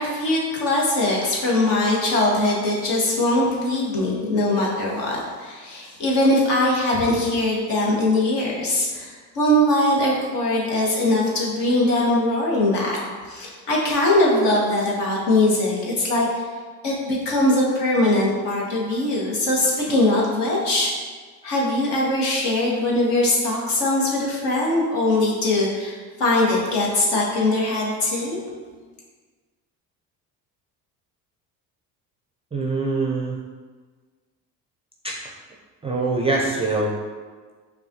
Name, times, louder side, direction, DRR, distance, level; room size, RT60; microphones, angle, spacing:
voice 1, 0.0-13.0 13.3-16.4 16.8-20.9 21.4-28.4, left 1 dB, 60° left, -3 dB, 1.3 m, -21 dB
voice 2, 32.5-33.4 35.0-35.2 35.8-36.9, right 3 dB, 15° right, -3 dB, 0.4 m, -23 dB
5.4 x 2.4 x 2.8 m, 1.5 s
hypercardioid pair, 65°, 48 cm